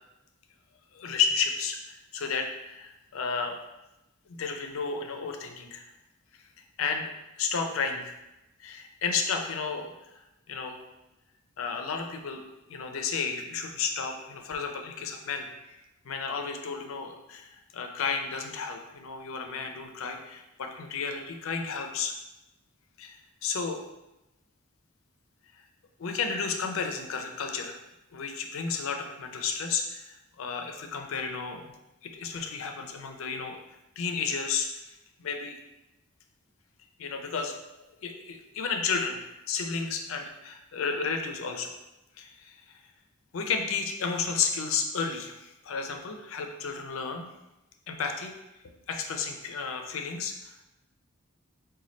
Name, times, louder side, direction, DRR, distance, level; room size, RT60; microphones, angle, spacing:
voice 1, 0.9-3.6 4.3-5.9 6.8-7.1 7.4-8.1 8.6-9.9 10.5-10.8 11.6-12.4 12.7-15.5 16.0-22.1 23.0-23.8 26.0-27.8 28.1-31.7 32.0-33.6 34.0-34.7 35.2-35.6 37.0-37.5 38.0-41.7 42.2-42.6 43.3-47.3 47.9-48.3 48.6-50.7, left 5 dB, 85° left, 4 dB, 0.4 m, -32 dB
4.0 x 2.2 x 3.1 m, 0.96 s
head